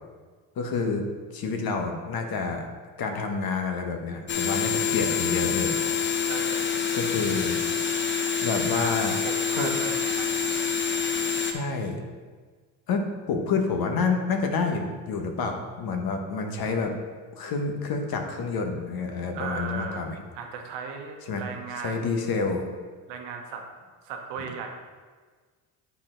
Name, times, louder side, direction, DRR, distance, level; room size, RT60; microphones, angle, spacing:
voice 1, 0.6-1.1 1.3-2.7 3.0-5.8 6.9-7.6 8.4-9.1 9.5-9.7 11.4-12.0 12.9-16.9 17.4-20.2 21.3-21.4 21.8-22.6, left 4 dB, 60° left, 4 dB, 1.1 m, -28 dB
sound 1, 4.3-11.5, left 6 dB, 30° left, 0.7 m, -26 dB
voice 2, 6.3-6.8 8.7-10.7 19.3-20.1 20.3-22.2 23.1-23.6 24.0-24.7, right 5 dB, 85° right, 3 dB, 1.1 m, -37 dB
8.1 x 4.3 x 3.8 m, 1.5 s
cardioid pair, 90°, 41 cm